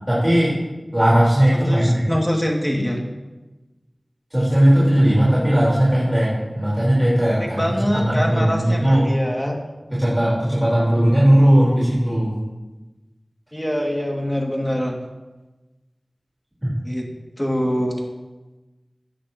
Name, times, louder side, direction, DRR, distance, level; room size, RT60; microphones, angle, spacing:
voice 1, 0.1-0.5 0.9-2.0 4.3-7.6 7.9-9.1 9.9-12.4 16.6-16.7, equal, 15° right, -8 dB, 4.5 m, -17 dB
voice 2, 1.7-3.0 7.3-9.6 13.5-15.0 16.8-17.1 17.4-18.1, equal, 10° left, -1 dB, 2.5 m, -24 dB
16.5 x 10.0 x 3.1 m, 1.1 s
wide cardioid pair, 45°, 0 cm